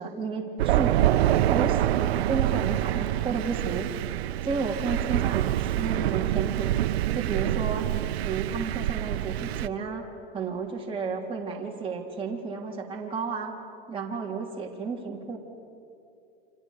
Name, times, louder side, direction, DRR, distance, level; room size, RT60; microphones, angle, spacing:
voice 1, 0.0-3.9 4.4-6.7 7.1-7.9 8.2-10.0 10.3-13.5 13.9-15.4, right 5 dB, 15° right, -2 dB, 3.5 m, -32 dB
Thunder, 0.6-9.7, right 14 dB, 75° right, 0.7 m, -26 dB
30.0 x 26.0 x 6.8 m, 2.6 s
supercardioid pair, 135°, 32 cm